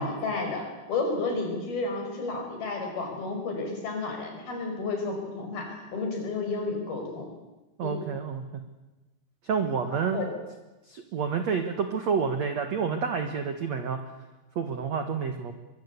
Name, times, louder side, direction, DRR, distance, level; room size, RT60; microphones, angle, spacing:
voice 1, 0.0-7.3 7.8-8.0 9.9-10.3, left 3 dB, 50° left, 3 dB, 6.9 m, -32 dB
voice 2, 7.8-8.6 9.4-10.2 10.9-14.0 14.6-15.5, right 6 dB, 65° right, 7 dB, 1.7 m, -29 dB
23.5 x 23.5 x 8.4 m, 1.1 s
omnidirectional pair, 5.5 m